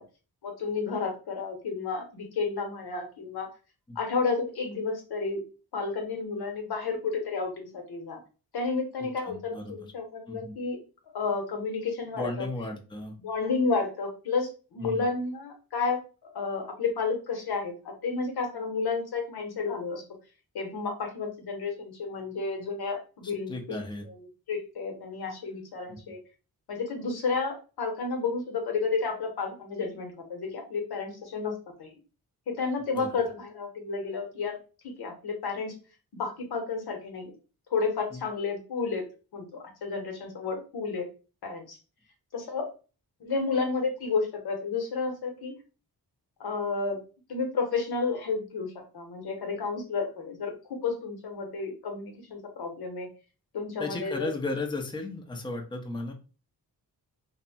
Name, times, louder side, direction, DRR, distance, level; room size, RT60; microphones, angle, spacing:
voice 1, 0.4-3.5 4.0-5.4 5.7-8.2 8.5-10.8 11.1-12.5 13.2-16.0 16.3-17.7 18.0-20.0 20.5-23.5 24.1-24.2 24.5-26.2 26.7-31.5 31.8-31.9 32.5-34.6 34.8-35.7 36.1-37.3 37.7-39.0 39.3-41.1 41.4-41.8 42.3-42.7 43.2-45.5 46.4-47.0 47.3-53.1 53.5-54.3, left 4 dB, 80° left, 3 dB, 0.9 m, -31 dB
voice 2, 9.0-9.9 10.3-10.5 12.2-13.2 14.8-15.0 23.5-24.1 25.9-26.0 33.0-33.1 38.1-38.2 53.8-56.1, left 2 dB, 10° left, 3 dB, 0.6 m, -35 dB
2.7 x 2.1 x 2.7 m, 0.34 s
cardioid pair, 70°, 38 cm